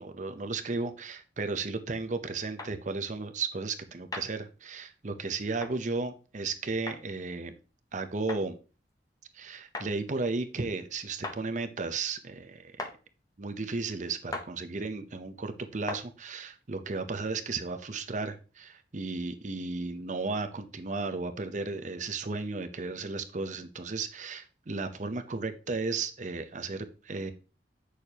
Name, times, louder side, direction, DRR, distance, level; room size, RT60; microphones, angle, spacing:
voice 1, 0.0-7.5 7.9-8.6 9.3-12.9 13.4-27.3, right 3 dB, 45° right, 9 dB, 0.7 m, -34 dB
sound 1, 2.6-2.7 4.1-4.3 5.6-5.7 6.9-7.0 8.3-8.4 9.7-9.9 11.2-11.4 12.8-12.9 14.3-14.5 15.9-16.0, left 2 dB, 20° left, 0.8 m, -37 dB
8.5 x 6.4 x 2.9 m, 0.35 s
head